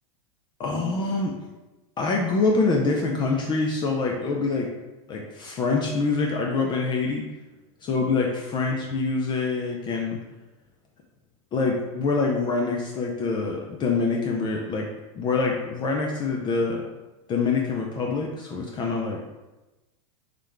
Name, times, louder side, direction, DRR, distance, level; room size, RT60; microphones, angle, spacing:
voice 1, 0.6-1.4 2.0-4.7 5.1-7.3 7.8-10.2 11.5-14.9 15.1-16.8 17.3-19.2, left 4 dB, 25° left, 0 dB, 0.4 m, -25 dB
3.3 x 3.0 x 3.8 m, 1.1 s
supercardioid pair, 130°, 18 cm